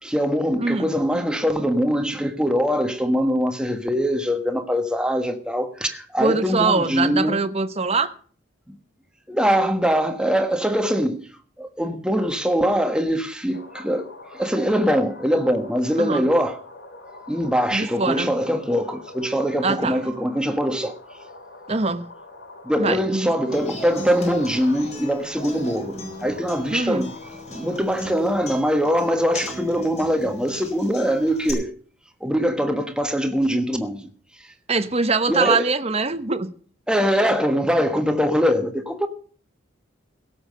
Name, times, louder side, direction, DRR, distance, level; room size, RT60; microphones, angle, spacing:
voice 1, 0.0-7.4 8.7-8.8 9.3-11.2 11.6-16.6 17.3-21.0 22.6-27.1 27.5-31.7 32.2-34.1 35.3-35.7 36.9-39.1, equal, 5° right, 1.3 m, -22 dB
voice 2, 0.6-0.9 6.2-8.1 16.0-16.3 17.7-18.3 19.6-20.0 21.7-22.1 22.8-23.3 26.7-27.1 34.7-36.5, right 4 dB, 30° right, 0.9 m, -23 dB
sound 1, 13.5-27.8, left 2 dB, 60° left, 3.0 m, -44 dB
Human voice / Acoustic guitar, 23.5-31.5, left 1 dB, 35° left, 4.7 m, -37 dB
17.0 x 7.2 x 6.6 m
head